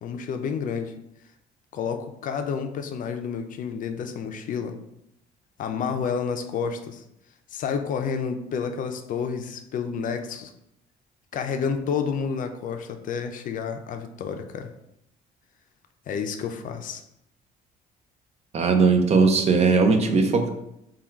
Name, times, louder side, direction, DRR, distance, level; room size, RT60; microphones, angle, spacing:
voice 1, 0.0-0.9 1.7-4.8 5.6-7.0 7.5-10.5 11.3-14.7 16.1-17.0, left 6 dB, 50° left, 6 dB, 0.4 m, -30 dB
voice 2, 18.5-20.5, right 4 dB, 40° right, 6 dB, 0.6 m, -19 dB
3.5 x 2.3 x 4.4 m, 0.81 s
cardioid pair, 110°, 17 cm